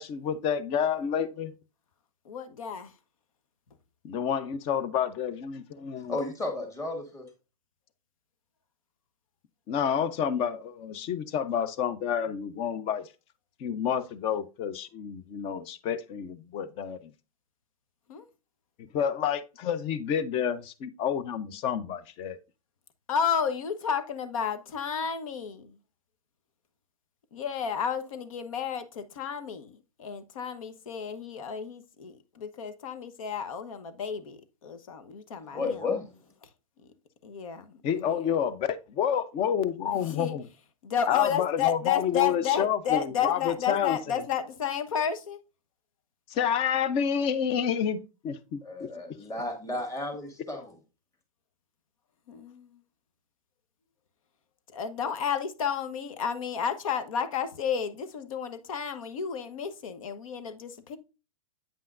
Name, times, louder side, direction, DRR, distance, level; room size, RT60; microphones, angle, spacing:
voice 1, 0.0-1.5 4.0-6.2 9.7-13.1 13.6-17.1 18.8-22.4 37.8-40.5 41.1-44.0 46.3-48.9, left 8 dB, 30° left, 0.7 m, -29 dB
voice 2, 2.2-2.9 18.1-18.3 23.1-25.8 27.3-35.8 37.2-37.8 38.1-38.3 39.9-40.3 40.8-45.4 52.3-52.8 54.7-61.0, left 7 dB, 65° left, 1.1 m, -32 dB
voice 3, 6.1-7.3 35.5-36.2 48.6-50.7, left 3 dB, 15° left, 1.9 m, -33 dB
8.6 x 5.5 x 2.5 m
hypercardioid pair, 125°, 18 cm